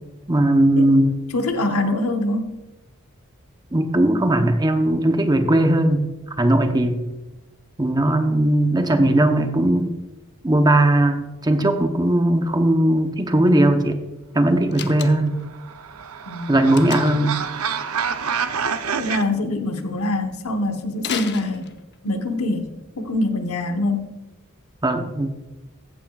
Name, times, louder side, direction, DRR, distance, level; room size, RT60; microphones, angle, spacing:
voice 1, 0.3-1.2 3.7-6.1 6.4-7.0 7.8-9.9 10.4-14.0 14.3-15.4 16.5-17.4 24.8-25.3, right 1 dB, 20° right, 6 dB, 0.8 m, -18 dB
voice 2, 1.3-2.5 16.2-16.6 19.0-21.7 22.0-22.7 23.0-24.2, left 2 dB, 80° left, 6 dB, 1.1 m, -24 dB
Slam, 14.7-15.5 16.7-17.3 21.0-22.1, left 7 dB, 55° left, 0.7 m, -33 dB
sound 1, 15.3-19.2, right 6 dB, 75° right, 0.6 m, -27 dB
14.5 x 8.4 x 2.4 m, 1.1 s
head